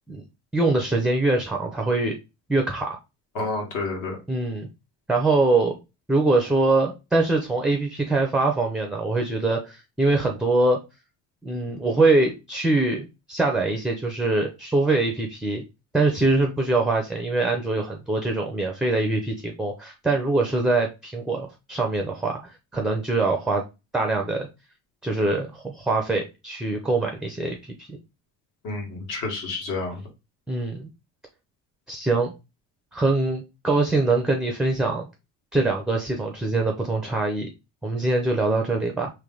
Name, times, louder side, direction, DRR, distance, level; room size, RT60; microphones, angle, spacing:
voice 1, 0.5-2.2 2.5-3.0 4.3-4.7 5.1-5.8 6.1-10.8 11.4-15.6 15.9-23.6 23.9-24.5 25.0-28.0 30.5-30.9 31.9-32.3 32.9-35.1 35.5-37.5 37.8-39.1, right 2 dB, ahead, 2 dB, 0.4 m, -23 dB
voice 2, 3.3-4.2 28.6-30.0, left 3 dB, 65° left, 2 dB, 1.7 m, -29 dB
3.3 x 3.0 x 3.8 m, 0.26 s
cardioid pair, 155°, 35 cm